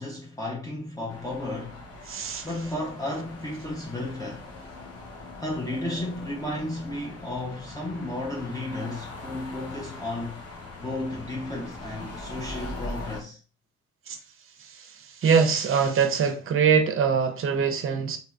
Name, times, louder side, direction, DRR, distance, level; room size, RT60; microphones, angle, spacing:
voice 1, 0.0-1.9 2.4-4.5 5.4-10.4 10.8-13.4, left 1 dB, 10° left, 0.8 m, -33 dB
sound 1, 1.1-13.2, left 2 dB, 50° left, 1.0 m, -41 dB
voice 2, 2.1-2.5 14.1-14.2 14.6-18.2, right 6 dB, 45° right, 0.7 m, -23 dB
3.0 x 2.6 x 2.4 m
cardioid pair, 90°, 30 cm